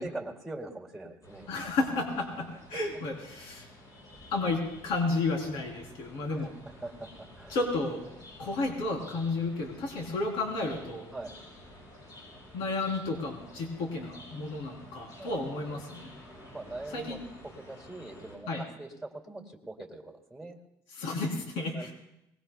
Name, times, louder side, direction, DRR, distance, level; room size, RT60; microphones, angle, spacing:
voice 1, 0.0-1.5 6.3-7.6 11.1-11.4 15.2-15.8 16.5-17.2 17.4-20.6 21.7-21.9, right 2 dB, ahead, 1 dB, 2.4 m, -42 dB
sound 1, 1.2-18.4, left 1 dB, 45° left, 7.6 m, -51 dB
voice 2, 1.5-3.7 4.3-6.5 7.5-8.1 8.4-11.1 12.5-16.1 16.9-17.2 18.5-18.6 21.0-21.9, left 3 dB, 75° left, 0 dB, 3.5 m, -32 dB
23.5 x 20.0 x 2.3 m, 0.87 s
cardioid pair, 120°, 9 cm